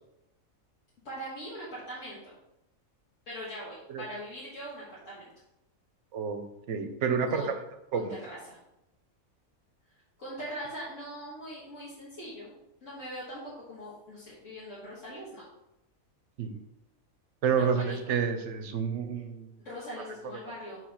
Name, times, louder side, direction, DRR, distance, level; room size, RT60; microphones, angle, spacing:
voice 1, 1.0-2.3 3.3-5.3 7.3-7.5 7.9-8.6 10.2-12.5 12.8-15.4 17.5-18.0 19.6-20.8, equal, 65° left, -8 dB, 1.9 m, -41 dB
voice 2, 6.1-7.4 7.9-8.1 16.4-16.5 17.4-19.5, right 6 dB, 65° right, 8 dB, 0.9 m, -29 dB
4.7 x 4.0 x 5.7 m, 0.88 s
omnidirectional pair, 1.4 m